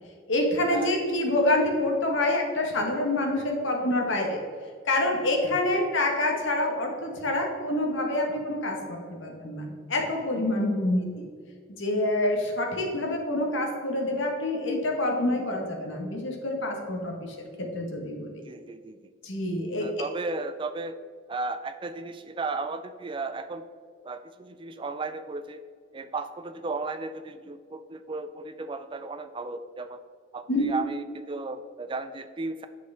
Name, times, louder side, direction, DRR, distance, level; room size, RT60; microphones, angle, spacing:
voice 1, 0.3-4.4 4.9-11.2 11.8-18.3 19.2-19.9 30.5-30.7, left 1 dB, 60° left, 1 dB, 1.3 m, -27 dB
voice 2, 18.5-19.0 19.7-21.0 21.3-23.6 24.0-25.6 25.9-30.0 30.3-32.7, right 3 dB, 25° right, 10 dB, 0.3 m, -35 dB
8.0 x 6.2 x 3.4 m, 2.1 s
head